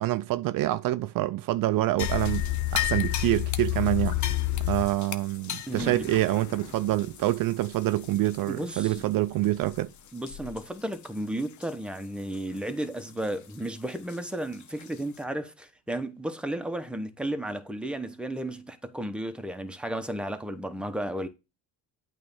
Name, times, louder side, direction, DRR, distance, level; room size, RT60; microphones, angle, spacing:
voice 1, 0.0-4.2 4.7-9.9, right 16 dB, 60° right, 0.5 m, -26 dB
sound 1, 2.0-8.6 8.9-9.0 9.6-9.8 10.3-10.6 10.9-11.0 11.6-11.7 14.1-14.2 14.8-14.9, left 14 dB, 50° left, 0.9 m, -30 dB
voice 2, 5.7-6.0 8.5-9.0 10.1-21.3, right 1 dB, 5° right, 1.0 m, -33 dB
8.7 x 3.3 x 5.5 m
cardioid pair, 95°, 38 cm